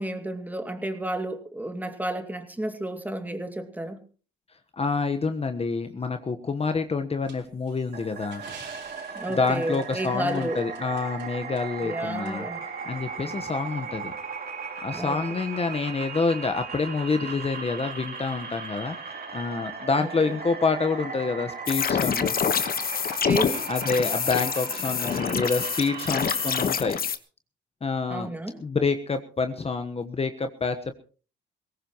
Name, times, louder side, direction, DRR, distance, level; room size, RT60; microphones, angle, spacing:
voice 1, 0.0-4.0 9.1-10.6 11.8-12.6 14.9-15.4 20.0-20.3 23.2-23.7 28.1-28.6, right 1 dB, 10° right, 6 dB, 2.5 m, -31 dB
voice 2, 4.8-8.4 9.3-12.5 12.8-14.1 14.8-22.3 23.7-27.0 27.8-30.9, left 4 dB, 30° left, 7 dB, 1.2 m, -27 dB
sound 1, 7.3-11.3 11.6-11.7 12.3-12.4, right 6 dB, 70° right, 5.4 m, -48 dB
sound 2, 7.9-26.7, right 5 dB, 50° right, 3.2 m, -37 dB
sound 3, 21.7-27.2, left 7 dB, 50° left, 1.3 m, -26 dB
21.0 x 18.0 x 3.1 m, 0.38 s
cardioid pair, 90°, 20 cm